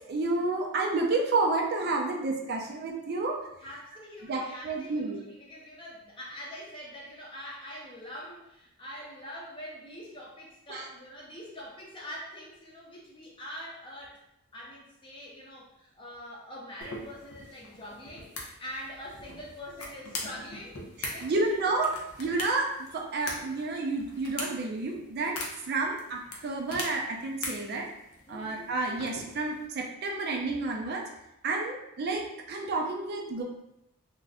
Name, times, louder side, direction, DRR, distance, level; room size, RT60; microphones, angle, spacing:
voice 1, 0.1-3.4 4.3-5.2 10.7-10.8 21.2-21.9 22.2-25.4 25.7-27.9 28.3-31.0 31.4-33.4, right 3 dB, 45° right, 0 dB, 0.4 m, -30 dB
voice 2, 3.6-14.2 14.5-20.8 21.1-21.5 28.3-28.6, equal, 20° left, -4 dB, 0.6 m, -44 dB
sound 1, 16.8-29.7, left 2 dB, 75° left, 0.6 m, -42 dB
2.5 x 2.1 x 3.5 m, 0.85 s
head